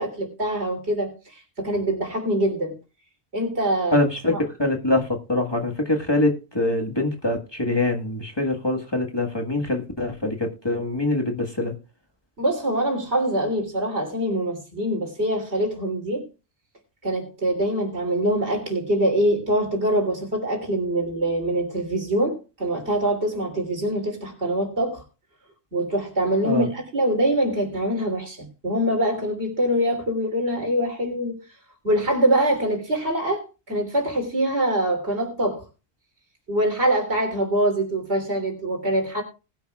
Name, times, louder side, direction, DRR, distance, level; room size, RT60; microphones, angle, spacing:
voice 1, 0.0-2.7 3.3-4.0 4.3-4.4 12.4-16.3 17.0-25.0 25.7-31.4 31.8-35.6 36.5-39.2, right 1 dB, 80° right, 3.6 m, -24 dB
voice 2, 3.9-4.3 4.6-11.7 26.4-26.7, left 2 dB, 25° left, 1.6 m, -24 dB
19.5 x 10.0 x 2.4 m
omnidirectional pair, 1.1 m